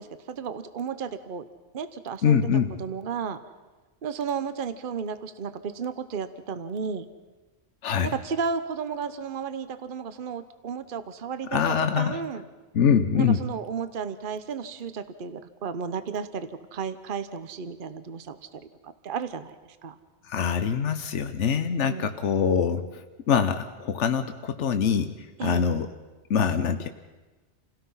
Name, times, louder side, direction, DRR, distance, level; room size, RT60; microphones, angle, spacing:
voice 1, 0.0-1.5 1.7-2.5 2.8-3.4 4.0-7.1 8.0-11.6 12.0-12.4 13.1-20.0 21.8-22.1 25.4-25.6, right 6 dB, 50° right, 12 dB, 1.1 m, -33 dB
voice 2, 2.2-2.7 7.8-8.1 11.5-12.2 12.7-13.4 20.2-25.1 25.4-25.9 26.3-26.9, left 7 dB, 85° left, 8 dB, 1.2 m, -24 dB
28.5 x 17.5 x 5.6 m, 1.2 s
omnidirectional pair, 1.2 m